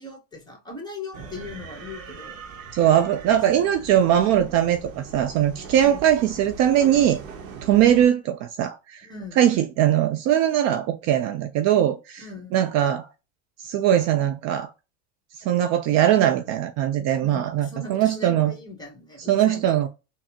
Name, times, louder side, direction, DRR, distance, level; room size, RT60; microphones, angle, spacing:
voice 1, 0.0-2.4 2.9-3.4 5.8-6.1 9.0-9.4 12.2-12.6 17.2-19.8, left 3 dB, 10° left, 1.2 m, -39 dB
sound 1, 1.1-8.1, right 5 dB, 90° right, 0.8 m, -41 dB
voice 2, 2.7-7.2 7.6-9.1 9.4-13.1 13.6-14.7 15.4-18.5 19.3-19.9, right 11 dB, 45° right, 0.4 m, -21 dB
4.0 x 2.1 x 2.7 m
hypercardioid pair, 100°, 39 cm